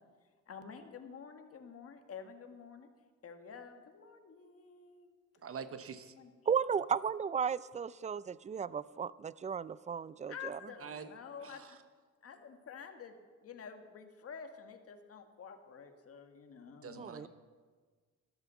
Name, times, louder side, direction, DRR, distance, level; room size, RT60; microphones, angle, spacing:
voice 1, 0.5-2.9 3.2-5.2 6.2-6.3 10.3-11.8 12.2-17.3, left 6 dB, 50° left, 6 dB, 1.7 m, -49 dB
voice 2, 5.4-6.1 10.8-11.1 11.4-11.8 16.8-17.3, right 6 dB, 50° right, 10 dB, 1.1 m, -45 dB
voice 3, 6.5-10.6 17.0-17.3, right 7 dB, 25° right, 19 dB, 0.4 m, -35 dB
13.0 x 12.0 x 7.0 m, 1.5 s
cardioid pair, 90°, 30 cm